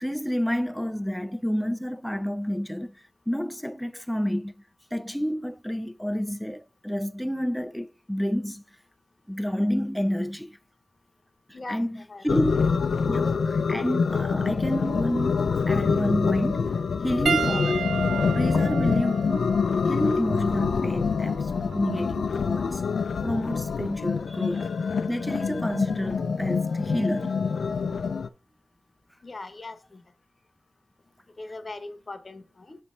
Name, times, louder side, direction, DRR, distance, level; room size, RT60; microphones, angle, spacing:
voice 1, 0.0-4.5 4.9-8.6 9.3-10.6 11.7-12.8 13.1-16.8 17.0-17.9 18.3-19.6 19.9-22.8 23.2-24.8 25.1-27.4, equal, 5° left, 0.4 m, -29 dB
voice 2, 11.5-12.3 29.2-30.0 31.4-32.8, left 2 dB, 30° left, 0.9 m, -40 dB
sound 1, 12.3-28.3, left 5 dB, 65° left, 0.4 m, -26 dB
Piano, 17.3-21.9 22.9-23.0 25.0-25.1, right 8 dB, 75° right, 0.4 m, -33 dB
8.1 x 3.2 x 5.5 m
wide cardioid pair, 160°, 0 cm